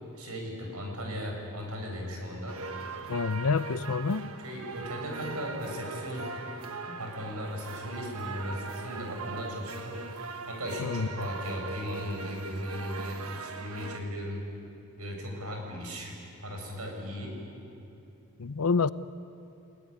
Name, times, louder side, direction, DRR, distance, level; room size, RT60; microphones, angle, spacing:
voice 1, 0.1-2.6 4.4-6.3 6.8-14.4 15.0-17.4, equal, 90° right, 2 dB, 7.0 m, -37 dB
sound 1, 2.5-14.0, right 4 dB, 70° right, 1.4 m, -40 dB
voice 2, 3.1-4.3 10.8-11.1 18.4-18.9, left 4 dB, 85° left, 15 dB, 0.7 m, -27 dB
29.5 x 18.5 x 9.9 m, 2.7 s
head